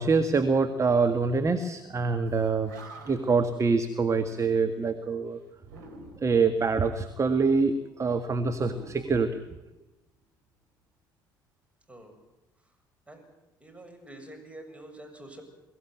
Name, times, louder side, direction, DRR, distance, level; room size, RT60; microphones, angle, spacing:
voice 1, 0.0-2.7 3.1-5.4 6.2-9.4, right 4 dB, 30° right, 7 dB, 1.8 m, -25 dB
Animal, 2.3-2.4 2.6-3.5 5.6-6.5 8.5-9.8, right 2 dB, 75° right, 3.9 m, -47 dB
voice 2, 11.9-12.2 13.1-13.3 13.6-15.4, right 1 dB, 10° right, 4 dB, 7.4 m, -46 dB
23.0 x 16.0 x 9.6 m, 0.96 s
figure-of-eight pair, 55°, 11 cm